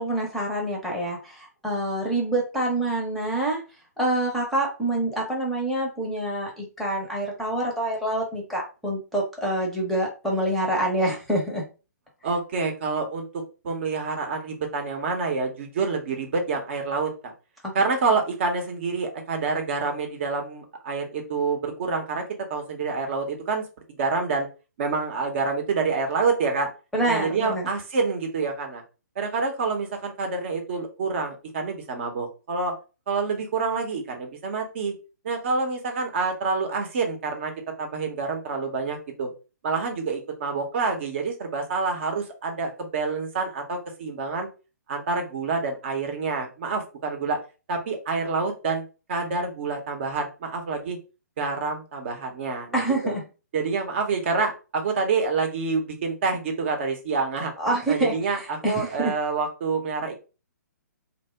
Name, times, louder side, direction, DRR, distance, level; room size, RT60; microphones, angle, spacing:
voice 1, 0.0-3.6 4.0-11.6 17.6-17.7 26.9-27.7 52.7-53.2 57.6-59.1, right 1 dB, ahead, -1 dB, 0.8 m, -26 dB
voice 2, 12.2-17.3 17.7-22.2 22.5-23.6 23.9-24.5 24.8-26.7 27.1-28.8 29.2-32.7 33.1-34.9 35.2-37.5 37.8-39.3 39.6-44.5 44.9-47.4 47.7-48.8 49.1-51.0 51.4-52.8 53.5-57.5 57.9-60.1, right 4 dB, 40° right, 3 dB, 0.8 m, -27 dB
2.8 x 2.1 x 3.4 m, 0.32 s
figure-of-eight pair, 130°, 9 cm